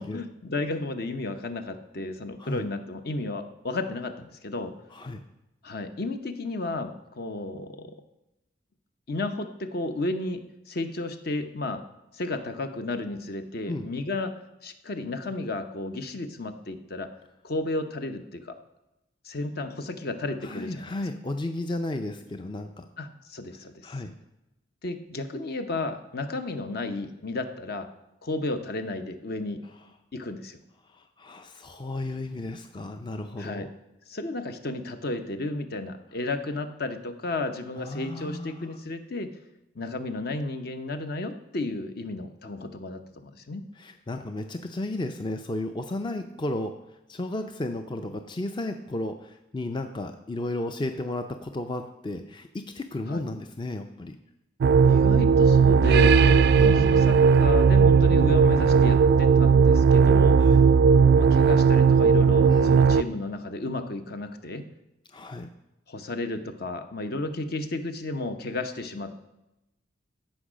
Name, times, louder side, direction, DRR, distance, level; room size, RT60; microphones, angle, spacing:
voice 1, 0.0-4.7 5.6-7.9 9.1-11.8 12.1-14.3 14.6-17.1 17.4-18.6 19.2-20.9 23.0-23.9 24.8-27.9 28.2-29.6 30.1-30.6 33.4-33.7 34.1-39.3 39.7-43.6 53.1-53.2 54.8-60.4 61.2-64.7 65.9-69.2, left 2 dB, 55° left, 8 dB, 0.8 m, -33 dB
voice 2, 4.9-5.2 13.7-13.9 20.4-22.9 23.8-24.1 30.9-33.7 37.8-38.8 43.8-46.8 47.1-54.2 56.5-57.2 60.3-60.6 62.4-62.8 65.1-65.5, left 2 dB, 25° left, 7 dB, 0.4 m, -33 dB
sound 1, 54.6-63.0, right 6 dB, 60° right, 0.3 m, -17 dB
15.0 x 5.5 x 5.0 m, 0.92 s
head